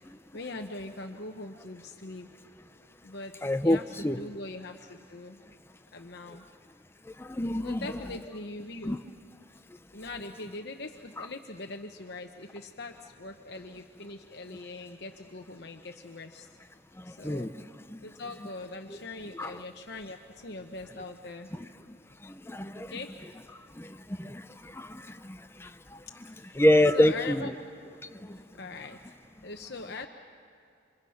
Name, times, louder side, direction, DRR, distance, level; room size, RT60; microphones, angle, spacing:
voice 1, 0.3-2.3 3.0-3.3 3.6-5.4 5.9-6.4 7.6-9.0 9.9-16.5 17.1-17.5 18.0-21.5 22.9-23.2 26.4-26.6 26.9-27.5 28.5-29.0 29.4-30.1, left 2 dB, 55° left, 4 dB, 1.0 m, -41 dB
voice 2, 3.4-4.2 7.1-8.0 8.8-9.0 11.2-11.3 17.0-18.0 19.3-19.6 21.5-21.7 22.2-23.0 23.5-26.0 26.5-27.5 28.1-28.4, left 1 dB, 10° left, 9 dB, 0.6 m, -28 dB
28.0 x 25.5 x 5.8 m, 2.6 s
head